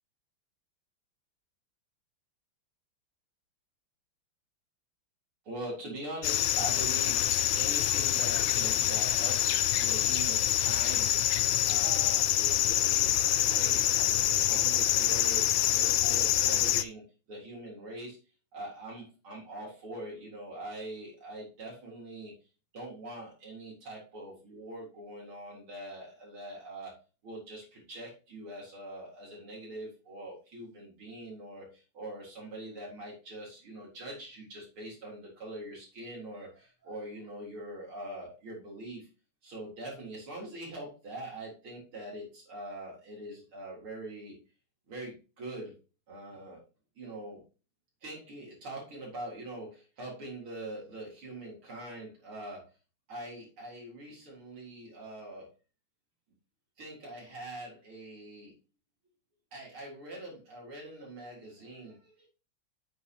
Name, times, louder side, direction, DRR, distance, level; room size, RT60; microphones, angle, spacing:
voice 1, 5.4-7.2 7.6-11.1 11.4-17.0 17.3-18.2 18.5-22.3 22.7-27.0 27.2-39.1 39.4-44.4 44.9-45.8 46.1-46.6 47.0-47.4 48.0-52.7 53.1-55.5 56.8-58.5 59.5-62.3, right 1 dB, 80° right, -3 dB, 4.7 m, -43 dB
sound 1, 6.2-16.8, left 12 dB, 70° left, 1.3 m, -26 dB
9.5 x 8.3 x 3.0 m, 0.32 s
omnidirectional pair, 2.3 m